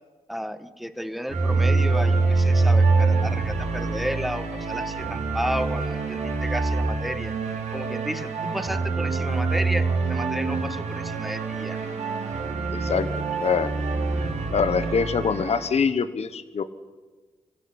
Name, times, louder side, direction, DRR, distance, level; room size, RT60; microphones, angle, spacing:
voice 1, 0.3-7.3 7.7-11.8, equal, ahead, 10 dB, 1.8 m, -32 dB
sound 1, 1.3-15.8, right 3 dB, 75° right, 4.0 m, -25 dB
voice 2, 12.7-13.1 13.4-13.7 14.5-16.6, left 6 dB, 60° left, 12 dB, 1.3 m, -24 dB
26.0 x 15.5 x 9.8 m, 1.3 s
cardioid pair, 55°, 12 cm